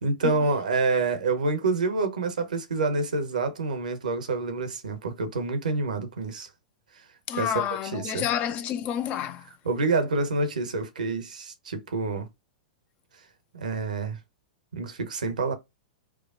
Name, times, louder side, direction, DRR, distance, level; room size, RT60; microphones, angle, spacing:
voice 1, 0.0-6.5 7.4-7.6 7.9-8.3 9.6-12.3 13.5-14.2 14.7-15.5, right 3 dB, 75° right, 0.9 m, -27 dB
voice 2, 7.3-9.5, left 10 dB, 35° left, 0.6 m, -29 dB
4.7 x 2.3 x 2.4 m
figure-of-eight pair, 100°, 4 cm